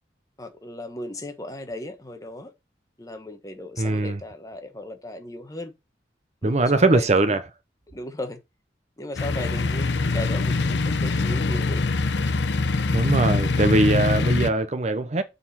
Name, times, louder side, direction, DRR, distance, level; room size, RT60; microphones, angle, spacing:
voice 1, 0.4-2.5 3.0-5.7 6.4-7.4 7.9-8.4 9.0-11.8, left 1 dB, 20° left, 1.1 m, -36 dB
voice 2, 3.8-4.2 6.4-7.4 12.9-15.2, right 2 dB, 40° right, 0.7 m, -21 dB
sound 1, 9.2-14.5, left 3 dB, 80° left, 0.7 m, -23 dB
7.0 x 4.1 x 5.6 m
head